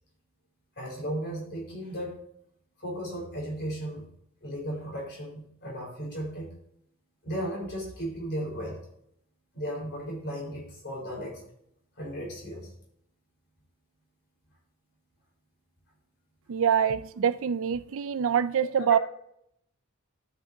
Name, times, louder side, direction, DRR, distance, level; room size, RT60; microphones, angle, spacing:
voice 1, 0.8-2.1 2.8-4.1 4.4-6.5 7.2-8.8 9.5-11.4 12.0-12.7 18.8-19.0, equal, 55° left, 4.5 m, -35 dB
voice 2, 16.5-19.0, right 8 dB, 65° right, 0.4 m, -25 dB
12.5 x 8.5 x 2.8 m
head